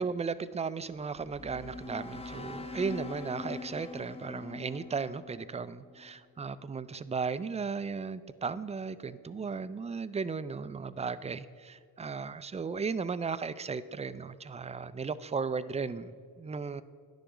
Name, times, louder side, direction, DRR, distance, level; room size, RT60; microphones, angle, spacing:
voice 1, 0.0-16.8, right 5 dB, 20° right, 15 dB, 0.3 m, -35 dB
sound 1, 1.1-6.1, left 3 dB, 15° left, 0.7 m, -43 dB
11.0 x 7.0 x 3.8 m, 2.2 s
cardioid pair, 55°, 41 cm